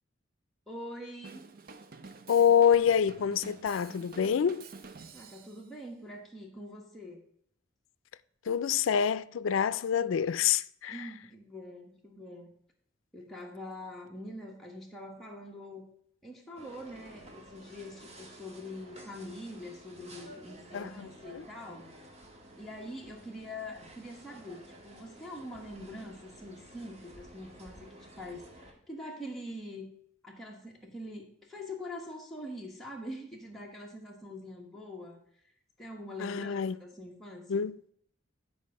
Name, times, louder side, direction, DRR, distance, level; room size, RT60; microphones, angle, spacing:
voice 1, 0.7-1.5 5.1-7.2 10.9-12.5 13.1-15.9 16.2-21.9 22.6-29.9 30.2-35.2 35.8-37.6, left 1 dB, ahead, 1.2 m, -44 dB
Drum kit / Drum, 1.2-5.6, right 4 dB, 50° right, 0.6 m, -49 dB
voice 2, 2.3-4.7 8.5-11.0 20.7-21.1 21.3-21.4 36.2-36.8 37.5-37.8, left 8 dB, 90° left, 0.4 m, -26 dB
sound 1, 16.6-28.7, equal, 35° right, 1.5 m, -52 dB
10.5 x 4.7 x 5.3 m
head